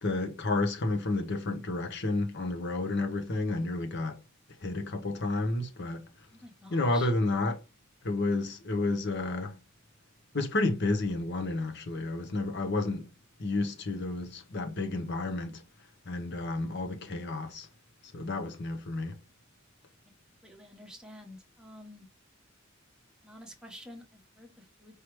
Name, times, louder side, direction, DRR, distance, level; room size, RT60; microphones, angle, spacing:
voice 1, 0.0-4.2 4.6-6.0 6.7-7.6 8.0-9.6 10.3-13.1 13.4-15.6 16.1-17.7 18.1-19.2, left 2 dB, 55° left, 1.0 m, -31 dB
voice 2, 6.3-7.1 20.4-22.1 23.2-25.0, equal, 5° right, 1.1 m, -49 dB
4.8 x 3.2 x 3.1 m
head